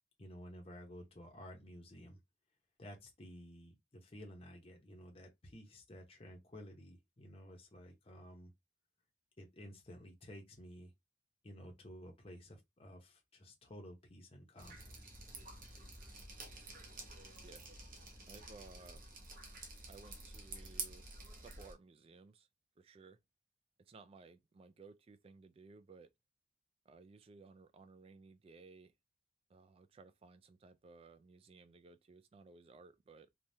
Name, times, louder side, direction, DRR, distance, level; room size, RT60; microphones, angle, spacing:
voice 1, 0.2-2.2 2.8-8.5 9.4-10.9 11.4-14.8, equal, 30° left, 0.7 m, -53 dB
Drip, 14.6-21.7, right 3 dB, 50° right, 0.9 m, -49 dB
voice 2, 18.3-19.0 19.9-21.1 21.4-22.5 22.8-23.2 23.8-26.1 26.9-28.9 29.5-33.3, right 4 dB, 30° right, 0.3 m, -58 dB
3.2 x 2.2 x 2.7 m
head